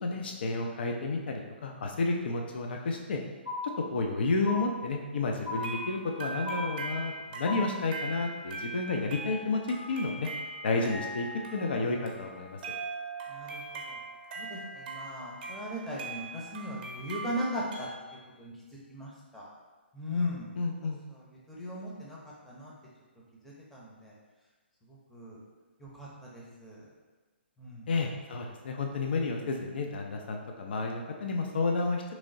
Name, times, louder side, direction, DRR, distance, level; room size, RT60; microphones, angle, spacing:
voice 1, 0.0-3.2 3.9-9.6 9.9-10.3 10.6-12.6 20.6-21.0 27.9-32.0, left 3 dB, 60° left, 2 dB, 0.4 m, -31 dB
sound 1, 3.5-4.1 4.5-5.1 5.5-6.1 6.5-7.1 7.5-8.1, left 3 dB, 85° left, 0.8 m, -37 dB
sound 2, 5.5-17.9, right 2 dB, 45° right, 0.7 m, -41 dB
voice 2, 13.3-14.0 14.4-18.5 18.9-19.5 19.9-20.5 21.1-22.2 22.5-22.7 23.4-24.1 24.9-25.4 25.8-26.8 27.6-27.9, left 1 dB, 5° left, -6 dB, 0.7 m, -38 dB
3.6 x 3.1 x 2.6 m, 1.3 s
figure-of-eight pair, 130°, 6 cm